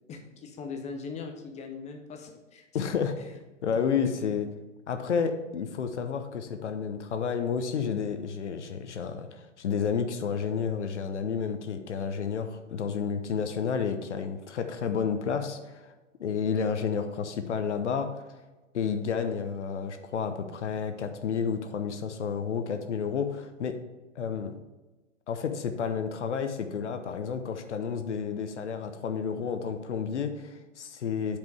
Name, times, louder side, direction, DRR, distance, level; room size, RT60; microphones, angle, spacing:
voice 1, 0.1-2.6 3.2-3.3, left 5 dB, 20° left, 4 dB, 1.0 m, -40 dB
voice 2, 2.7-3.1 3.6-4.5 4.9-15.9 16.2-18.4 18.7-23.8 24.1-24.6 25.3-31.4, left 6 dB, 65° left, 7 dB, 1.0 m, -31 dB
8.1 x 5.2 x 4.8 m, 1.2 s
figure-of-eight pair, 110°, 38 cm